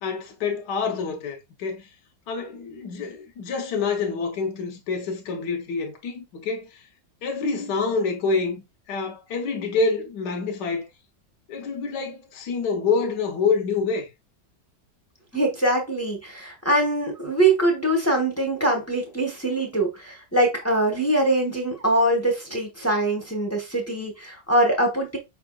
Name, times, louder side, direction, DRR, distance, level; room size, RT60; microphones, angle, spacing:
voice 1, 0.0-1.9 2.3-6.9 7.2-8.6 8.9-10.9 11.5-14.1, left 4 dB, 70° left, 1.4 m, -27 dB
voice 2, 15.3-25.2, right 1 dB, 10° left, 0.8 m, -23 dB
5.5 x 3.5 x 2.3 m
omnidirectional pair, 1.9 m